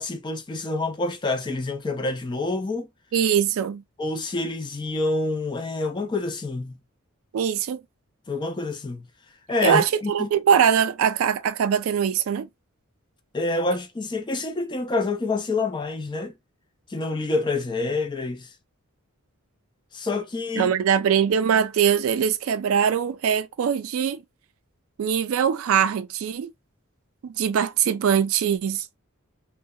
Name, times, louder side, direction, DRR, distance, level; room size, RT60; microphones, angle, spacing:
voice 1, 0.0-2.9 4.0-6.8 8.3-9.1 9.5-10.3 13.3-16.3 16.9-18.5 19.9-20.7, left 2 dB, 20° left, 0.3 m, -27 dB
voice 2, 3.1-3.8 7.3-7.8 9.6-12.5 20.6-24.2 25.0-26.5 27.2-29.0, right 8 dB, 65° right, 0.3 m, -22 dB
2.7 x 2.1 x 2.2 m
head